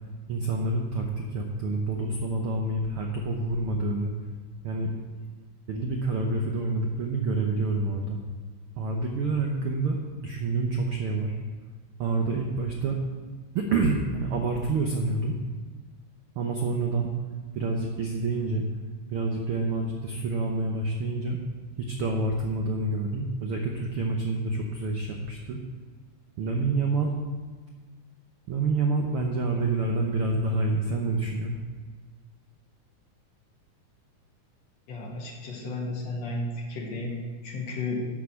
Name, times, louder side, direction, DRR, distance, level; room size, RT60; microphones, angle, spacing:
voice 1, 0.3-4.1 4.6-4.9 5.7-8.2 8.8-11.4 12.0-13.0 13.5-15.4 16.3-17.1 17.5-18.6 19.1-21.4 21.8-25.6 26.4-27.1 28.5-31.5, right 3 dB, 70° right, 1 dB, 1.3 m, -28 dB
voice 2, 34.9-38.1, left 2 dB, 60° left, -1 dB, 2.6 m, -33 dB
11.5 x 6.0 x 7.0 m, 1.5 s
omnidirectional pair, 3.6 m